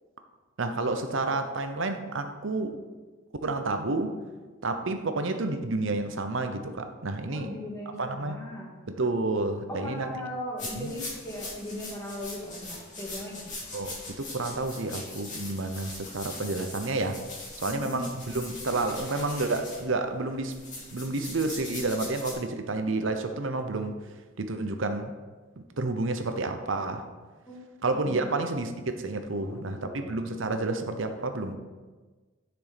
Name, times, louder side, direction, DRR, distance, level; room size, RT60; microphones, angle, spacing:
voice 1, 0.6-2.8 3.4-4.2 4.6-7.5 8.0-8.4 8.9-10.1 10.7-10.9 13.7-17.2 17.6-20.5 20.9-24.0 24.4-25.1 25.6-27.1 27.8-28.7 29.0-31.6, right 2 dB, 65° right, 7 dB, 0.8 m, -30 dB
voice 2, 7.3-8.8 9.7-13.5 17.7-18.0 27.5-27.6 28.0-28.3 29.4-30.1, left 1 dB, 15° left, -4 dB, 2.0 m, -38 dB
sound 1, 10.6-22.3, left 2 dB, 35° left, 2.7 m, -41 dB
7.2 x 6.1 x 5.1 m, 1.3 s
head